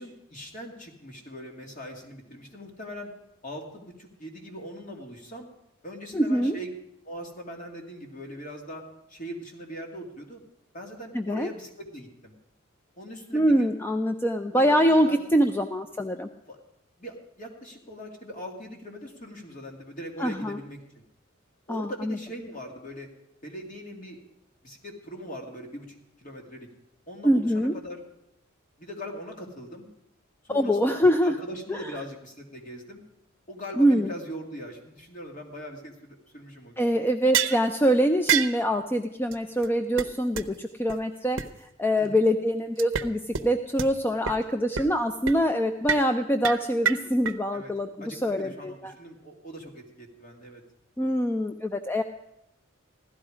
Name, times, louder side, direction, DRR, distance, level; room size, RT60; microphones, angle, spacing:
voice 1, 0.0-3.1 3.4-5.5 5.8-6.7 7.0-8.8 9.1-10.4 10.7-12.3 13.0-13.7 14.5-14.7 15.0-15.4 16.5-16.6 17.0-21.0 21.7-23.1 23.4-24.2 24.6-26.7 27.1-28.0 28.8-29.9 30.4-33.0 33.5-36.9 42.0-42.2 47.5-47.7 48.0-50.6, equal, 40° left, 1 dB, 2.4 m, -41 dB
voice 2, 6.1-6.5 11.1-11.5 13.3-16.3 20.2-20.6 21.7-22.2 27.2-27.7 30.5-31.4 31.7-31.9 33.8-34.1 36.8-41.4 41.8-48.9 51.0-52.0, equal, 10° left, 7 dB, 0.5 m, -24 dB
sound 1, 37.3-37.6 38.3-38.6 39.3-39.4 39.6-39.7 40.0-40.1 40.4-40.5 40.9-41.0 41.4-41.5 42.8-43.1 43.3-43.4 43.8-43.9 44.3-44.4 44.8-45.0 45.3-45.4 45.9-46.1 46.4-47.3, right 7 dB, 65° right, 0.8 m, -26 dB
16.0 x 12.5 x 5.0 m, 0.82 s
head